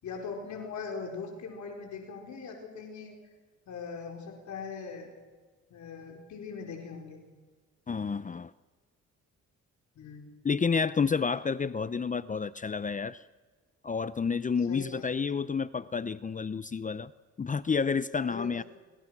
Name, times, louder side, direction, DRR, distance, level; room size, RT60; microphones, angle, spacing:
voice 1, 0.0-3.1 3.7-5.1 5.7-7.2 9.9-10.4 14.7-15.0 18.2-18.5, left 5 dB, 70° left, 2 dB, 5.0 m, -40 dB
voice 2, 7.9-8.5 10.4-13.2 13.8-17.1 17.4-18.6, left 5 dB, 25° left, 15 dB, 0.7 m, -30 dB
28.5 x 27.5 x 6.1 m, 1.4 s
cardioid pair, 90°, 30 cm